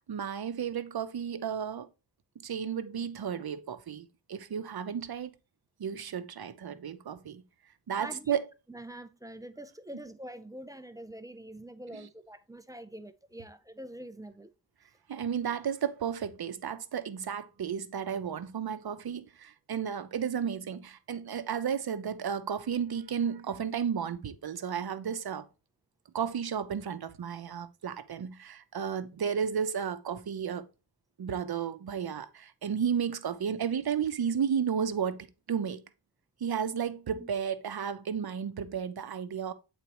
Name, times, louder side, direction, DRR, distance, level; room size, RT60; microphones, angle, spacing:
voice 1, 0.1-1.9 2.4-5.3 5.8-7.4 7.9-8.5 11.9-12.0 15.1-25.5 26.1-30.6 31.2-35.8 36.4-39.5, right 7 dB, 60° right, 0.7 m, -33 dB
voice 2, 8.0-8.4 8.7-14.5 37.2-37.3, right 1 dB, 10° right, 0.5 m, -45 dB
8.1 x 4.1 x 3.0 m
wide cardioid pair, 110°, 43 cm